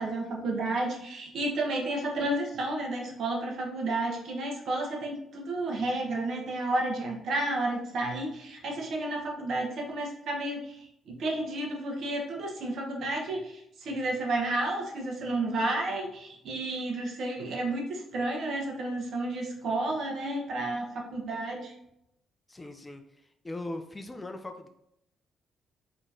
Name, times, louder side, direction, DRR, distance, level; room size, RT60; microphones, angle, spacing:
voice 1, 0.0-10.8 11.1-21.7, right 2 dB, 65° right, 0 dB, 1.0 m, -31 dB
voice 2, 22.5-24.7, left 2 dB, 20° left, 5 dB, 0.4 m, -40 dB
4.6 x 3.0 x 2.7 m, 0.79 s
cardioid pair, 90°, 0 cm